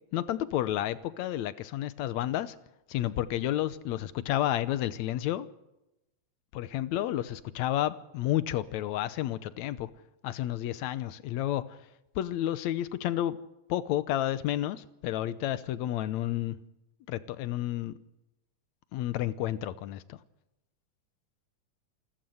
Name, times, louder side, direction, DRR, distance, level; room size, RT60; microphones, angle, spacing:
voice 1, 0.1-2.6 2.9-5.5 6.5-9.9 10.2-11.6 12.2-13.4 13.7-16.6 17.1-17.9 18.9-20.2, left 13 dB, 75° left, 2.1 m, -31 dB
28.0 x 13.0 x 7.9 m
omnidirectional pair, 3.3 m